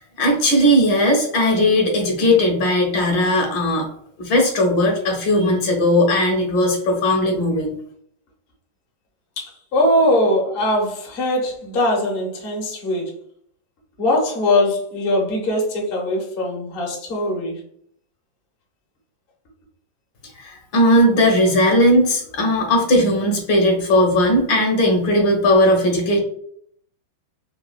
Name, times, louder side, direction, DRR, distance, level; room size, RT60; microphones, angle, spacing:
voice 1, 0.2-3.9 4.2-7.7 20.4-26.2, left 1 dB, 70° left, 1 dB, 1.5 m, -17 dB
voice 2, 9.4-13.1 14.0-17.5, left 1 dB, 50° left, 0 dB, 0.6 m, -21 dB
4.0 x 2.3 x 2.4 m, 0.64 s
omnidirectional pair, 2.2 m